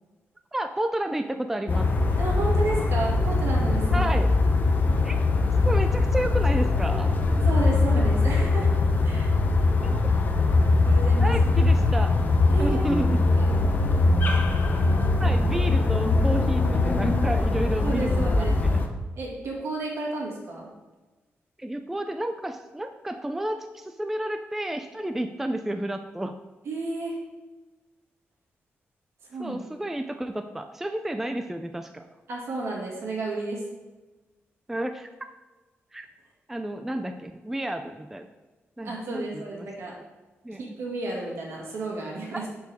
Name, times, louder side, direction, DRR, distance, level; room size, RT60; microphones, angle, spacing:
voice 1, 0.5-1.9 3.9-4.3 5.0-5.2 5.6-7.1 9.8-10.1 11.2-12.1 12.6-13.2 15.2-18.8 21.6-26.4 29.4-32.1 34.7-35.1 35.9-36.1 36.5-38.3 38.8-39.7 40.4-40.7 42.3-42.5, right 1 dB, 5° right, 7 dB, 0.3 m, -31 dB
sound 1, 1.7-18.9, left 3 dB, 40° left, 0.7 m, -22 dB
voice 2, 2.2-4.1 7.4-8.7 9.0-9.3 10.8-11.3 12.5-13.0 13.4-13.6 17.8-18.6 19.2-20.7 26.7-27.2 29.3-29.6 32.3-33.6 38.8-40.0 40.6-42.5, right 2 dB, 70° right, -2 dB, 2.1 m, -32 dB
10.5 x 4.6 x 3.6 m, 1.2 s
wide cardioid pair, 150°, 5 cm